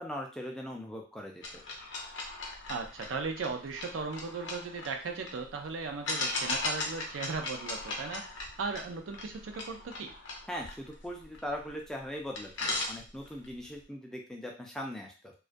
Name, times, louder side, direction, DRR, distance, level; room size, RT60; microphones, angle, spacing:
voice 1, 0.0-1.6 10.5-15.3, equal, 5° left, 0 dB, 0.3 m, -40 dB
sound 1, 1.4-5.4 6.1-11.7 12.0-12.1 12.4-13.5, left 2 dB, 65° left, 0.5 m, -37 dB
voice 2, 2.7-10.1, right 4 dB, 80° right, 4 dB, 0.4 m, -37 dB
2.3 x 2.2 x 2.5 m, 0.35 s
head